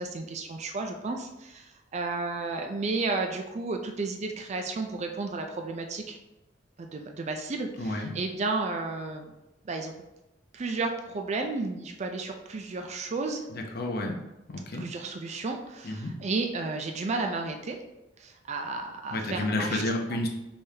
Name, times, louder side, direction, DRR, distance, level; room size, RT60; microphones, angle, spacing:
voice 1, 0.0-6.2 6.8-9.3 9.6-9.9 10.5-13.5 14.8-17.8 18.2-19.8, right 3 dB, 40° right, 4 dB, 0.4 m, -32 dB
voice 2, 7.8-8.1 13.5-14.2 14.5-14.9 15.8-16.2 19.1-20.3, left 1 dB, 60° left, 2 dB, 0.7 m, -30 dB
5.4 x 3.4 x 2.7 m, 0.94 s
head